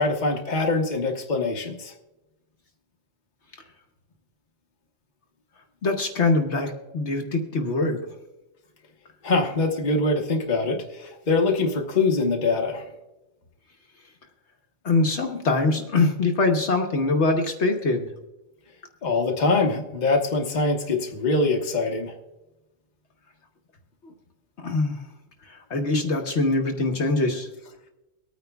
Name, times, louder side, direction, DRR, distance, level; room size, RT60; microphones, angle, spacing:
voice 1, 0.0-1.9 9.2-12.9 19.0-22.1, left 3 dB, 35° left, 1 dB, 1.1 m, -23 dB
voice 2, 5.8-8.0 14.8-18.1 24.0-24.1 24.6-25.0 25.5-27.5, left 3 dB, 60° left, 3 dB, 1.3 m, -23 dB
24.0 x 9.3 x 2.3 m, 0.99 s
omnidirectional pair, 1.3 m